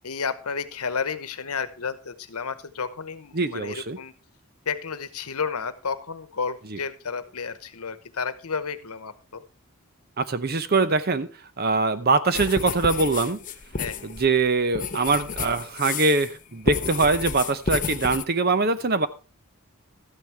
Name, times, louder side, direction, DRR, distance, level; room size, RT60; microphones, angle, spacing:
voice 1, 0.0-4.1 4.6-9.4 13.8-14.1, left 5 dB, 85° left, 12 dB, 1.0 m, -32 dB
voice 2, 3.3-4.0 6.7-6.8 10.2-11.3 11.6-13.4 14.0-19.1, right 3 dB, 45° right, 12 dB, 0.8 m, -23 dB
sound 1, 12.3-16.3 16.6-18.2, left 5 dB, 35° left, 0.7 m, -31 dB
13.0 x 9.4 x 3.4 m, 0.33 s
head